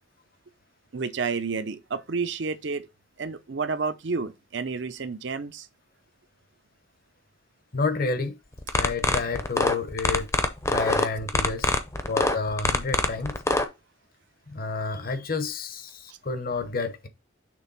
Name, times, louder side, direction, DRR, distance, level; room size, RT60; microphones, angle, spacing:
voice 1, 0.9-2.9 3.2-5.7 16.1-16.2, right 4 dB, 60° right, 0.6 m, -30 dB
voice 2, 7.7-8.4 8.7-10.3 10.7-11.7 12.1-13.3 14.5-17.1, left 4 dB, 45° left, 0.8 m, -29 dB
sound 1, 8.6-13.7, left 2 dB, 15° left, 0.6 m, -23 dB
6.2 x 3.5 x 5.5 m
head